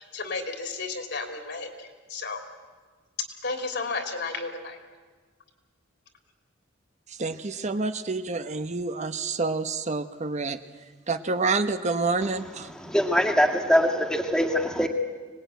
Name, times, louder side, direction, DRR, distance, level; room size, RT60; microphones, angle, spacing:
voice 1, 0.0-2.4 3.4-4.8, left 3 dB, 60° left, 5 dB, 3.2 m, -33 dB
voice 2, 7.2-10.6 11.1-12.7, right 3 dB, 35° right, 10 dB, 0.9 m, -28 dB
voice 3, 12.7-14.9, equal, 5° left, 3 dB, 1.9 m, -23 dB
25.0 x 19.5 x 9.2 m, 1.4 s
head